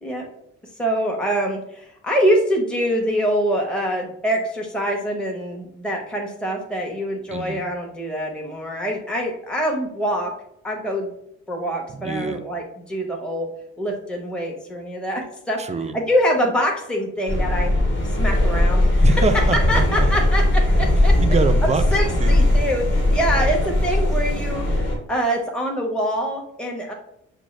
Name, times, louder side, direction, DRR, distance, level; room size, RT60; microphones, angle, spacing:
voice 1, 0.8-10.3 10.6-11.1 11.5-13.5 13.8-15.6 15.9-17.7 18.2-19.0 19.7-21.1 21.6-26.9, equal, 5° left, 0 dB, 0.8 m, -24 dB
voice 2, 7.3-7.6 11.9-12.4 15.6-15.9 19.0-19.6 21.2-21.9 22.2-22.5, right 4 dB, 25° right, 10 dB, 0.4 m, -24 dB
sound 1, 17.3-25.0, left 1 dB, 40° left, 1.2 m, -19 dB
6.1 x 2.4 x 3.1 m, 0.77 s
cardioid pair, 90°, 30 cm